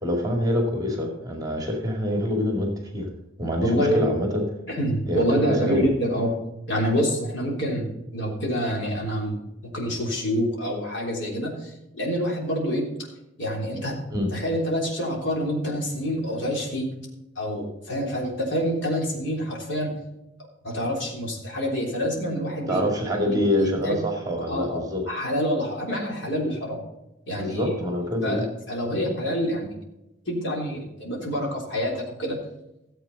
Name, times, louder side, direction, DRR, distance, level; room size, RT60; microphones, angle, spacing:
voice 1, 0.0-3.1 3.4-4.5 5.1-5.2 5.6-5.9 14.1-14.3 22.7-25.0 27.4-28.4, left 1 dB, 20° right, 2 dB, 2.2 m, -25 dB
voice 2, 3.6-4.0 4.7-6.4 6.7-12.8 13.4-14.0 14.3-16.9 17.4-19.9 20.6-22.8 23.3-24.0 24.5-26.8 27.3-27.8 28.2-29.7 30.3-32.4, equal, 65° left, -2 dB, 3.5 m, -27 dB
14.5 x 7.8 x 4.0 m, 0.91 s
head